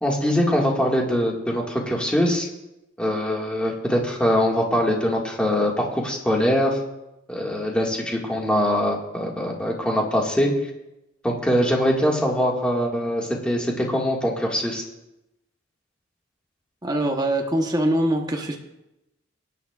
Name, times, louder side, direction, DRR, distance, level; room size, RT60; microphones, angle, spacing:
voice 1, 0.0-2.5 3.0-6.8 7.3-10.5 11.2-14.8, equal, 5° left, -2 dB, 1.8 m, -22 dB
voice 2, 16.8-18.6, right 1 dB, 20° right, 1 dB, 1.0 m, -23 dB
23.0 x 9.2 x 2.4 m, 0.92 s
head